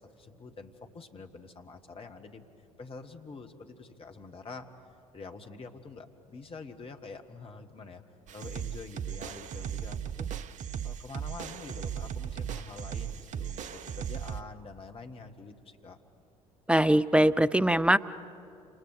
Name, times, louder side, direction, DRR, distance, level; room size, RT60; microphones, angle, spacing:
voice 1, 0.0-2.4 2.8-4.7 5.1-8.0 8.3-10.3 10.8-16.0, left 4 dB, 30° left, 5 dB, 2.0 m, -46 dB
sound 1, 8.3-14.4, right 8 dB, 45° right, 0.8 m, -37 dB
voice 2, 16.7-18.0, right 1 dB, 5° right, 13 dB, 0.6 m, -22 dB
29.5 x 28.0 x 5.2 m, 2.6 s
figure-of-eight pair, 55°, 18 cm